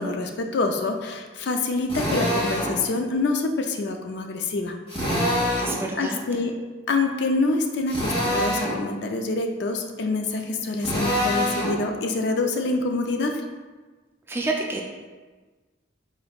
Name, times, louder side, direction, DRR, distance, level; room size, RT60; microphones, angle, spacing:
voice 1, 0.0-4.7 6.0-6.5 6.9-13.4, left 3 dB, 60° left, 4 dB, 0.4 m, -26 dB
Drill, 1.9-2.7 4.9-5.8 7.9-8.8 10.8-11.8, equal, 30° left, 1.4 m, -25 dB
voice 2, 5.6-6.2 14.3-14.8, right 2 dB, 10° right, 0 dB, 0.4 m, -28 dB
5.1 x 3.8 x 2.3 m, 1.3 s
head